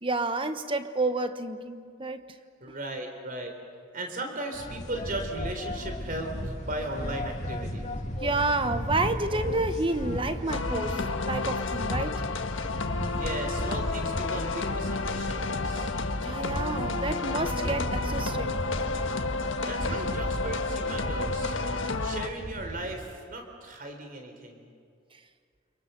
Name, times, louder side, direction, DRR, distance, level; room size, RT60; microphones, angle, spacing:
voice 1, 0.0-2.3 8.2-12.2 16.2-18.6, right 2 dB, 25° right, 1.2 m, -30 dB
voice 2, 2.6-3.5 3.9-7.9 13.1-15.9 19.7-21.5 22.0-24.7, right 1 dB, 40° right, 3.8 m, -37 dB
sound 1, 4.5-22.9, equal, 35° left, 2.4 m, -36 dB
sound 2, 10.5-22.3, left 3 dB, 65° left, 1.5 m, -31 dB
30.0 x 27.5 x 6.9 m
head